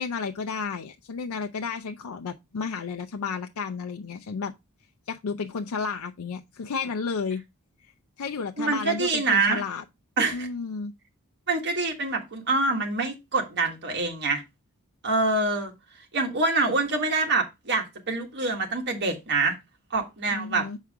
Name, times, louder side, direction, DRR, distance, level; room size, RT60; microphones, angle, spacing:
voice 1, 0.0-4.5 5.1-7.4 8.2-9.8 10.3-10.9 20.3-20.8, left 5 dB, 80° left, 0.5 m, -32 dB
voice 2, 8.6-9.6 10.2-10.5 11.5-14.4 15.0-15.7 16.1-19.6 19.9-20.7, right 3 dB, 55° right, 1.6 m, -25 dB
7.4 x 4.7 x 3.5 m
head